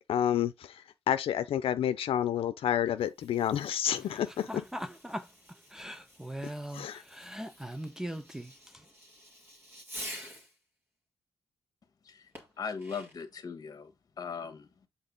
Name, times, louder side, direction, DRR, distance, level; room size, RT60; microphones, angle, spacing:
voice 1, 0.1-0.8 1.1-4.5 6.7-7.0, left 10 dB, 80° left, 0.6 m, -29 dB
Fireworks, 2.9-10.6 12.3-13.4, equal, 25° right, 2.1 m, -49 dB
voice 2, 4.1-8.8, equal, 5° right, 0.5 m, -41 dB
voice 3, 12.6-13.9 14.2-14.7, left 6 dB, 40° left, 1.5 m, -39 dB
8.0 x 3.8 x 3.8 m
wide cardioid pair, 155°, 9 cm